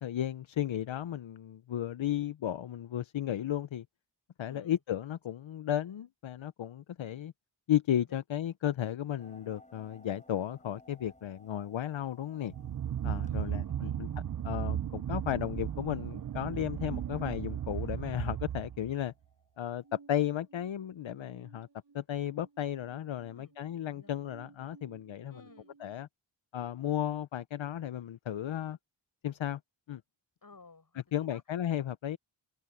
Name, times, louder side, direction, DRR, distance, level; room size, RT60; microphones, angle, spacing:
voice 1, 0.0-3.9 4.4-7.3 7.7-12.5 13.0-14.1 14.4-19.1 19.6-21.7 21.9-25.4 25.8-26.1 26.5-28.8 29.2-29.6 29.9-30.0 31.1-32.2, left 11 dB, 85° left, 0.6 m, -34 dB
voice 2, 4.4-4.8 8.1-8.2 13.3-14.0 23.2-23.5 23.9-24.3 25.3-25.8 30.4-31.4, left 3 dB, 50° left, 7.8 m, -57 dB
sound 1, 9.2-19.9, left 1 dB, 15° left, 5.4 m, -62 dB
sound 2, 12.5-19.0, right 10 dB, 45° right, 0.5 m, -35 dB
sound 3, 19.8-25.9, right 4 dB, 65° right, 2.8 m, -59 dB
wide cardioid pair, 85°, 45 cm